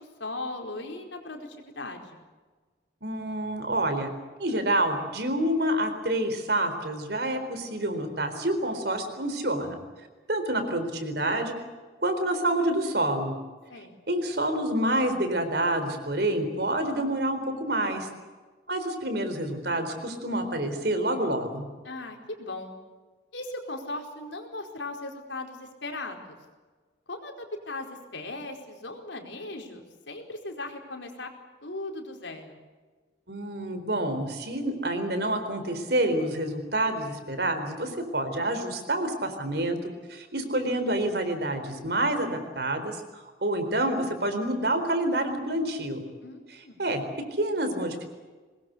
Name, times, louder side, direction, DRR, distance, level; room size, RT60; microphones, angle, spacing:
voice 1, 0.0-2.2 13.7-13.9 21.8-22.7 23.3-26.4 27.1-31.3 31.6-32.6 46.2-46.8, left 2 dB, 85° left, 3 dB, 4.7 m, -38 dB
voice 2, 3.0-4.1 4.4-9.8 10.3-11.6 12.0-13.3 14.1-18.1 18.7-21.7 33.3-39.8 40.1-43.0 43.4-46.0 46.5-47.0 47.3-48.1, right 1 dB, 60° right, 8 dB, 4.2 m, -28 dB
23.5 x 21.0 x 8.2 m, 1.4 s
head